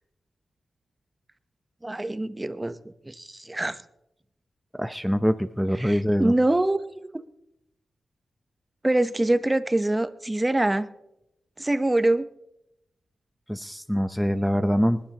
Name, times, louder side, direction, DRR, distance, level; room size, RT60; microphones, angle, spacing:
voice 1, 1.8-3.8 5.8-7.2 8.8-10.9 11.6-12.3, right 1 dB, 20° right, 11 dB, 1.0 m, -24 dB
voice 2, 4.7-6.3 13.5-15.0, equal, ahead, 10 dB, 0.8 m, -24 dB
25.5 x 11.5 x 3.0 m, 0.85 s
cardioid pair, 45°, 0 cm